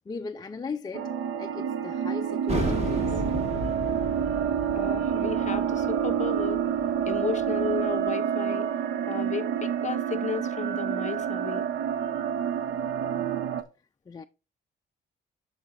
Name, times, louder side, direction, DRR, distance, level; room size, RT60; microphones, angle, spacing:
voice 1, 0.1-1.1 1.4-3.2 14.1-14.2, left 4 dB, 20° left, 0.3 m, -37 dB
sound 1, 0.9-13.6, right 8 dB, 75° right, 0.7 m, -28 dB
sound 2, 2.5-7.8, equal, 35° right, 2.1 m, -33 dB
voice 2, 4.7-6.6 7.1-8.7 9.1-11.6, left 6 dB, 35° left, 0.8 m, -33 dB
13.0 x 4.7 x 2.4 m
cardioid pair, 90°, 20 cm